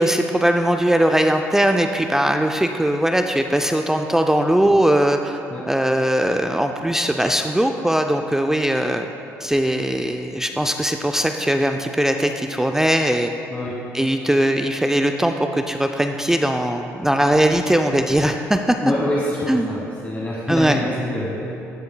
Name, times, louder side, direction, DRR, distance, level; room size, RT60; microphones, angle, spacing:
voice 1, 0.0-5.4 5.7-9.1 9.4-13.3 13.9-18.8 19.5-19.7 20.5-20.8, right 1 dB, 5° right, 5 dB, 0.4 m, -20 dB
voice 2, 18.8-21.4, left 1 dB, 20° left, -5 dB, 1.2 m, -25 dB
14.0 x 6.6 x 2.2 m, 2.8 s
supercardioid pair, 70°, 7 cm